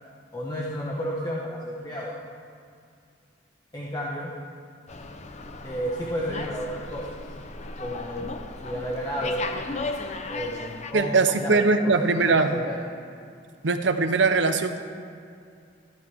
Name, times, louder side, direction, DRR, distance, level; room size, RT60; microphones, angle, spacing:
voice 1, 0.3-2.1 3.7-4.3 5.6-7.1 7.8-8.3 8.6-9.5 10.3-11.9 12.3-12.8, equal, 20° left, -4 dB, 1.1 m, -32 dB
Slam, 4.9-10.9, left 3 dB, 40° left, 0.7 m, -36 dB
voice 2, 10.9-12.5 13.6-14.8, right 4 dB, 80° right, 8 dB, 0.8 m, -21 dB
14.0 x 12.5 x 3.6 m, 2.4 s
head